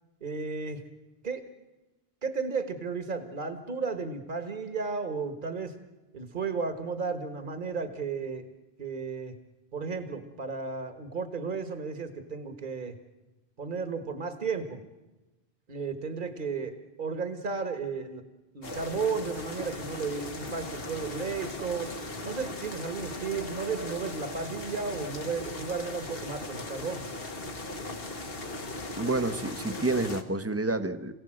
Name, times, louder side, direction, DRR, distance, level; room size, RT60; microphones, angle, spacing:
voice 1, 0.2-0.8 1.2-1.5 2.2-5.7 6.1-8.5 8.8-9.4 9.7-13.0 13.6-14.8 15.7-18.2 18.5-21.9 22.2-27.1, right 5 dB, 50° right, 8 dB, 1.7 m, -34 dB
sound 1, 18.6-30.2, left 2 dB, 65° left, 1.8 m, -38 dB
voice 2, 29.0-31.1, right 2 dB, 15° right, 9 dB, 0.8 m, -29 dB
27.0 x 17.0 x 7.7 m, 1.1 s
omnidirectional pair, 1.1 m